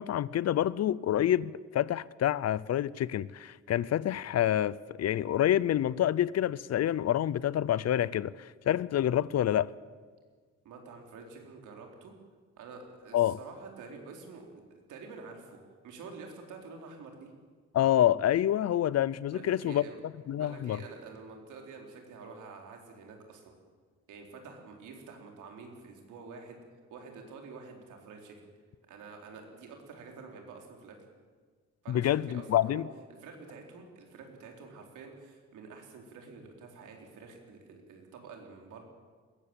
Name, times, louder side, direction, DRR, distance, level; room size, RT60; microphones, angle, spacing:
voice 1, 0.0-9.7 13.1-13.4 17.7-19.8 20.3-20.8 31.9-32.9, left 11 dB, 55° left, 0.6 m, -27 dB
voice 2, 10.6-12.1 12.6-14.6 14.9-17.3 19.3-20.0 20.3-23.5 24.1-26.6 26.9-28.5 28.9-31.0 31.8-32.8 33.2-38.8, right 4 dB, 80° right, 4.2 m, -48 dB
20.5 x 15.5 x 9.0 m
cardioid pair, 90°, 30 cm